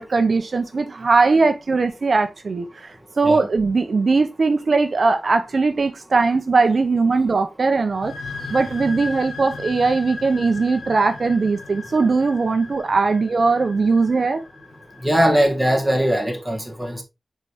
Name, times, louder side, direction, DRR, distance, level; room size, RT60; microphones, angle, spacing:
voice 1, 0.0-8.1 8.5-14.4, right 4 dB, 55° right, 0.7 m, -20 dB
sound 1, 7.9-15.3, left 4 dB, 85° left, 1.8 m, -36 dB
voice 2, 15.0-17.0, equal, ahead, 1.9 m, -20 dB
6.6 x 4.7 x 3.4 m
wide cardioid pair, 120°, 0 cm